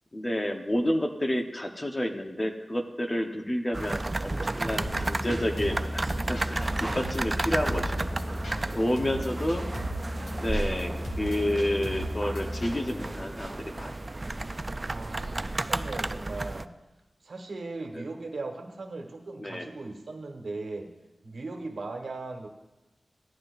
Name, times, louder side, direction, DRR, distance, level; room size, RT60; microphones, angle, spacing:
voice 1, 0.1-8.2 8.7-9.6 10.4-10.9 11.2-14.0 17.9-18.0 19.4-19.7, left 1 dB, 25° left, 4 dB, 1.0 m, -30 dB
sound 1, 3.7-16.7, right 2 dB, 30° right, 0.3 m, -33 dB
sound 2, 4.8-13.1, equal, 85° left, 2.4 m, -35 dB
voice 2, 14.8-16.7 17.2-20.9 21.2-22.5, right 3 dB, 75° right, 3 dB, 1.4 m, -38 dB
15.5 x 11.5 x 2.6 m, 1.0 s
wide cardioid pair, 95°, 0 cm